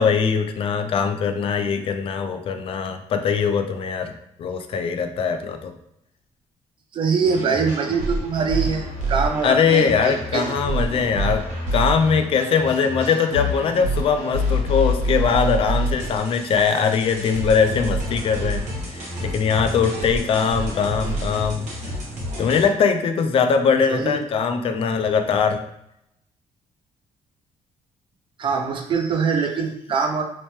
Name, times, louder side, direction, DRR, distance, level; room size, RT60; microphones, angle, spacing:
voice 1, 0.0-4.1 4.4-5.7 9.4-11.4 11.7-21.7 22.4-25.6, left 6 dB, 50° left, 7 dB, 0.4 m, -21 dB
voice 2, 6.9-10.4 23.9-24.2 28.4-30.2, right 5 dB, 45° right, 3 dB, 0.5 m, -23 dB
sound 1, 7.2-22.6, equal, 80° right, 1.0 m, -28 dB
2.9 x 2.1 x 3.1 m, 0.78 s
cardioid pair, 125°, 12 cm